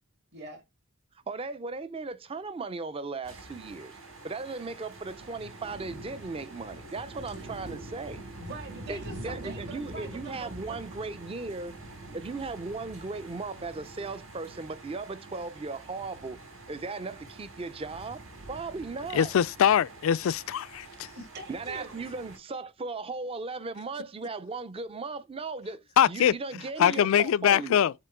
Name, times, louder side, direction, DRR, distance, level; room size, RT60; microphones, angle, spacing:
voice 1, 0.3-0.6 7.3-7.4 8.4-10.8 20.8-22.1, right 3 dB, 50° right, 2.5 m, -44 dB
voice 2, 1.3-4.0 4.2-8.2 8.9-11.8 12.1-16.4 16.7-18.2 18.5-19.3 21.5-27.9, right 3 dB, 25° right, 0.5 m, -37 dB
sound 1, 3.2-22.4, right 2 dB, 70° right, 3.9 m, -45 dB
voice 3, 19.1-21.1 26.0-26.3 26.8-27.9, left 9 dB, 70° left, 0.3 m, -23 dB
7.5 x 3.0 x 4.5 m
head